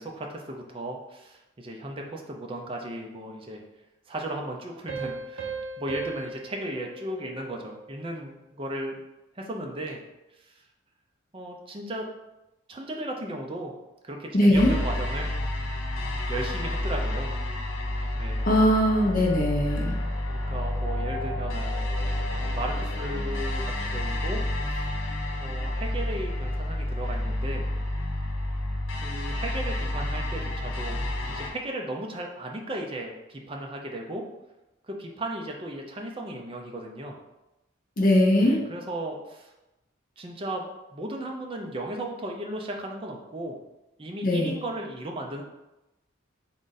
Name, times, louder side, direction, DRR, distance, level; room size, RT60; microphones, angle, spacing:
voice 1, 0.0-3.6 4.1-9.0 9.4-10.0 10.4-10.5 11.3-12.1 12.7-13.7 14.0-15.6 16.0-17.3 18.1-18.5 20.3-21.9 22.5-24.9 25.4-27.7 29.0-31.0 31.3-34.3 34.9-37.2 38.4-39.5 40.2-43.6 44.0-45.4, right 1 dB, 25° right, 1 dB, 0.5 m, -36 dB
sound 1, 4.9-8.2, right 4 dB, 75° right, 0.5 m, -38 dB
voice 2, 14.3-14.7 18.4-20.0 38.0-38.6 44.2-44.6, left 1 dB, 45° left, 0 dB, 0.6 m, -21 dB
sound 2, 14.5-31.5, left 1 dB, 80° left, 0.8 m, -30 dB
3.8 x 2.6 x 3.9 m, 0.97 s
head